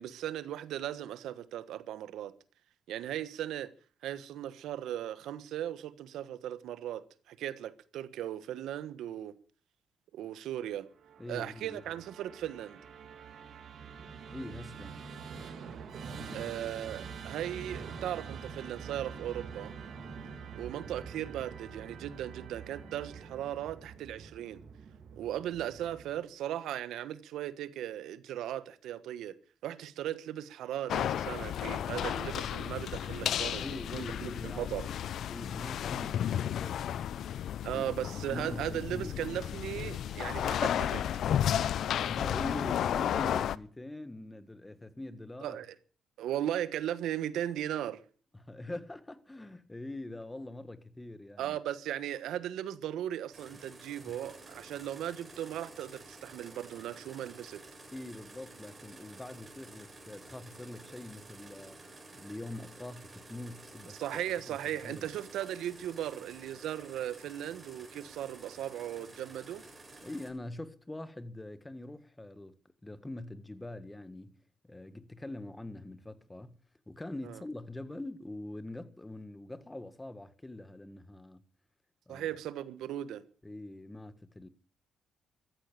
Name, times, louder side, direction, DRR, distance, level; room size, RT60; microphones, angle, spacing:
voice 1, 0.0-2.3 2.9-3.7 4.0-9.4 10.1-10.9 11.3-12.8 16.3-19.7 20.5-24.6 25.1-29.4 29.6-34.9 37.6-41.0 45.4-45.7 46.2-48.0 51.4-57.6 63.9-69.6 77.2-77.4 82.1-83.2, right 11 dB, 85° right, 1.4 m, -37 dB
Musical instrument, 11.0-26.3, right 6 dB, 60° right, 3.2 m, -46 dB
voice 2, 11.2-11.8 14.3-15.0 16.3-16.5 33.6-34.9 35.3-37.0 37.7-37.8 38.3-39.2 42.1-45.6 48.4-51.6 54.0-54.2 57.9-61.8 62.2-64.0 64.5-64.6 64.8-65.1 70.0-74.4 74.7-76.6 76.9-81.4 82.1-82.3 83.4-84.5, left 1 dB, 15° left, 1.5 m, -43 dB
sound 1, 30.9-43.6, left 10 dB, 70° left, 0.7 m, -33 dB
sound 2, 53.3-70.3, right 2 dB, 25° right, 7.4 m, -52 dB
14.0 x 14.0 x 6.7 m
cardioid pair, 90°, 0 cm